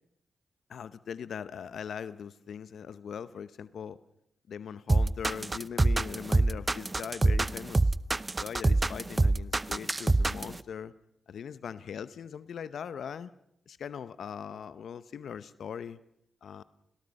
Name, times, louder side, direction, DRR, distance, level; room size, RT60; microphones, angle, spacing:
voice 1, 0.7-4.0 4.5-7.9 8.4-10.9 11.3-13.3 13.7-16.0 16.4-16.6, left 7 dB, 80° left, 15 dB, 0.8 m, -40 dB
sound 1, 4.9-10.6, right 2 dB, 25° right, 0.7 m, -25 dB
29.5 x 19.0 x 5.4 m, 0.75 s
cardioid pair, 60°, 0 cm